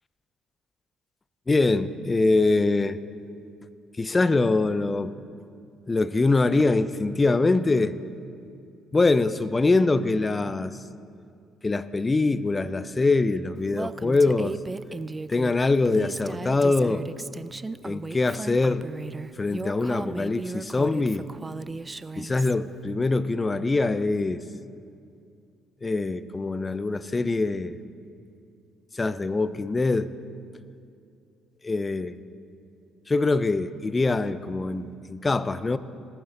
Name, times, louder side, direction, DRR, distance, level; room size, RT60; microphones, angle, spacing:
voice 1, 1.5-3.0 4.0-5.1 5.9-8.0 8.9-10.8 11.6-14.6 15.3-17.0 17.8-18.8 19.4-21.3 22.2-24.4 25.8-27.8 28.9-30.1 31.6-32.2 33.1-35.8, left 3 dB, 25° left, 15 dB, 0.5 m, -23 dB
Female speech woman speaking, 13.7-22.5, right 3 dB, 20° right, 0.3 m, -36 dB
19.5 x 9.1 x 3.9 m, 2.4 s
supercardioid pair, 65°, 0 cm